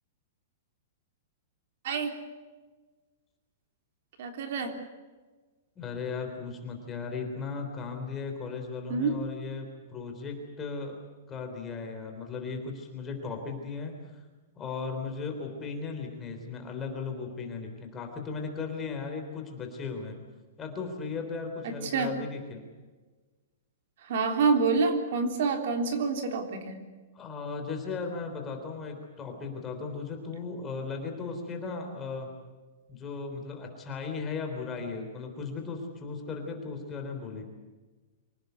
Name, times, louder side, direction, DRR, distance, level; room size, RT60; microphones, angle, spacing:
voice 1, 1.8-2.2 4.2-4.8 8.9-9.2 21.6-22.1 24.0-26.8, right 4 dB, 50° right, 5 dB, 3.5 m, -27 dB
voice 2, 5.8-11.0 11.3-14.2 14.6-20.2 20.6-22.6 27.1-32.3 32.9-37.4, left 4 dB, 15° left, 3 dB, 3.6 m, -36 dB
25.5 x 18.0 x 8.2 m, 1.3 s
hypercardioid pair, 175°, 0 cm